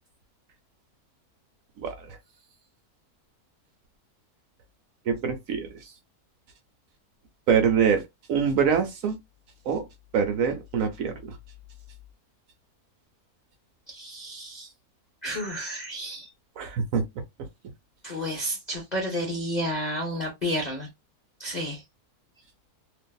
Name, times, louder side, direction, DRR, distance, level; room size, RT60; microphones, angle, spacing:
voice 1, 1.8-2.2 5.1-5.7 7.5-8.0 8.3-9.2 9.7-9.8 10.1-11.4 16.6-17.0, right 6 dB, 70° right, 0.9 m, -24 dB
voice 2, 13.9-14.7 15.2-16.3 18.0-20.9 21.4-21.8, equal, 55° left, 0.5 m, -31 dB
2.6 x 2.3 x 2.2 m
omnidirectional pair, 1.6 m